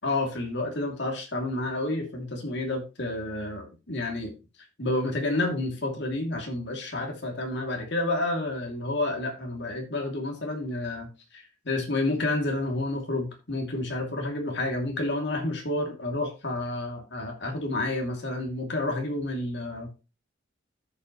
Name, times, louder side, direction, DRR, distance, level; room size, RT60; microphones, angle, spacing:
voice 1, 0.0-4.3 4.8-11.1 11.3-20.0, left 2 dB, 65° left, 3 dB, 2.6 m, -30 dB
14.5 x 5.5 x 3.1 m, 0.28 s
head